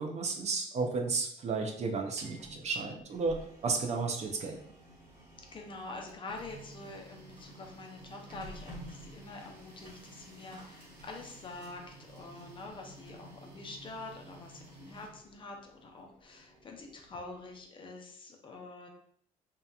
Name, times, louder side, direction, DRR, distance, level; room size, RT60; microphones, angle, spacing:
voice 1, 0.0-4.7, right 4 dB, 45° right, 3 dB, 0.4 m, -33 dB
Printer, 1.9-17.7, right 1 dB, 60° right, 1.1 m, -52 dB
voice 2, 5.5-18.9, left 3 dB, 30° left, 2 dB, 0.5 m, -46 dB
2.7 x 2.2 x 2.3 m, 0.65 s
cardioid pair, 105°, 16 cm